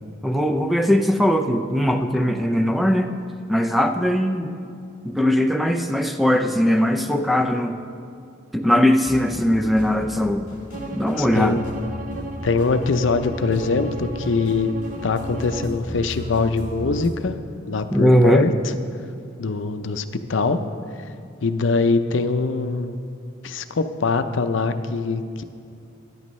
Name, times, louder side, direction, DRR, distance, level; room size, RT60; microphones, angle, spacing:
voice 1, 0.2-3.1 3.5-4.5 5.0-7.8 8.5-10.5 10.8-11.6 17.9-18.4, equal, ahead, 6 dB, 0.4 m, -20 dB
sound 1, 9.0-17.1, equal, 40° left, 2.9 m, -37 dB
Bowed string instrument, 10.7-15.8, right 1 dB, 40° right, 0.6 m, -36 dB
voice 2, 11.2-11.6 12.4-14.7 15.0-17.4 17.7-18.5 19.4-20.0 20.3-20.6 21.4-23.0 23.4-25.4, left 4 dB, 75° left, 9 dB, 0.5 m, -22 dB
14.0 x 10.5 x 3.1 m, 2.4 s
head